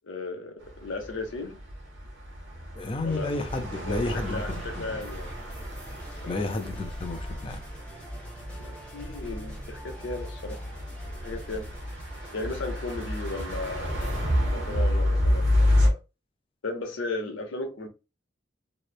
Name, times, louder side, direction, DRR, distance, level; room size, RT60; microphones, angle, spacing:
voice 1, 0.0-1.6 3.0-3.3 3.8-5.3 6.2-6.7 8.5-10.6 11.2-11.7 12.3-16.0 16.6-17.9, left 3 dB, 90° left, 0.7 m, -36 dB
sound 1, 0.6-15.9, left 1 dB, 80° right, 0.8 m, -30 dB
voice 2, 2.8-5.0 6.3-7.6, left 2 dB, 30° left, 0.4 m, -32 dB
sound 2, 3.1-14.2, equal, 5° left, 0.8 m, -43 dB
3.0 x 2.0 x 2.3 m
head